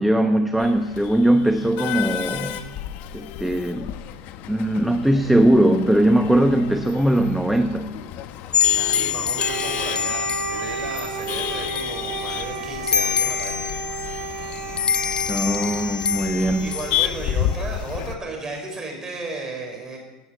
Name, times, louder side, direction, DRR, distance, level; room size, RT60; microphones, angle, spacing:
voice 1, 0.0-2.6 3.1-3.9 4.5-7.9 15.3-16.7, right 1 dB, 5° right, 7 dB, 0.9 m, -20 dB
Male speech man speaking / Laughter / Chatter, 0.6-18.1, left 11 dB, 55° left, 1.2 m, -32 dB
sound 1, 8.5-18.1, left 8 dB, 25° left, 0.6 m, -26 dB
voice 2, 8.9-13.7 16.1-16.3 16.6-20.0, right 2 dB, 20° right, 1 dB, 5.7 m, -34 dB
Wind instrument woodwind instrument, 9.3-17.4, right 6 dB, 65° right, 2.4 m, -33 dB
16.5 x 9.5 x 9.1 m, 1.1 s
supercardioid pair, 120°, 3 cm